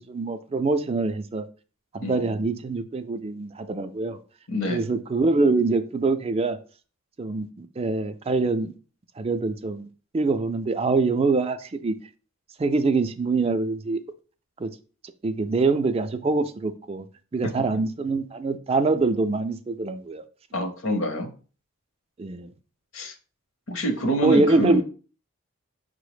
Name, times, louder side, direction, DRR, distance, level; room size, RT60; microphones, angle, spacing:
voice 1, 0.0-1.5 1.9-4.2 4.7-6.6 7.2-8.8 9.2-9.9 10.1-12.0 12.6-14.0 14.6-14.7 15.2-17.0 17.3-20.2 22.2-22.5 24.2-24.8, right 3 dB, 25° right, 10 dB, 0.3 m, -24 dB
voice 2, 2.0-2.4 4.5-4.9 17.4-17.5 20.5-21.3 22.9-23.1 23.7-24.8, right 1 dB, 60° left, 6 dB, 0.7 m, -26 dB
5.4 x 2.0 x 4.8 m, 0.38 s
head